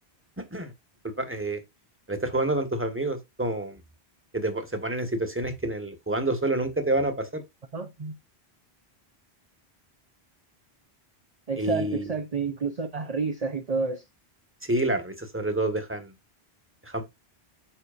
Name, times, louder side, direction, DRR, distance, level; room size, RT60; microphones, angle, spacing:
voice 1, 1.0-1.6 2.1-3.8 4.3-7.4 11.6-12.1 14.6-16.1 16.8-17.0, right 2 dB, 10° right, 1.7 m, -28 dB
voice 2, 7.7-8.1 11.5-14.0, right 4 dB, 40° right, 0.9 m, -29 dB
8.9 x 6.2 x 2.6 m
omnidirectional pair, 1.1 m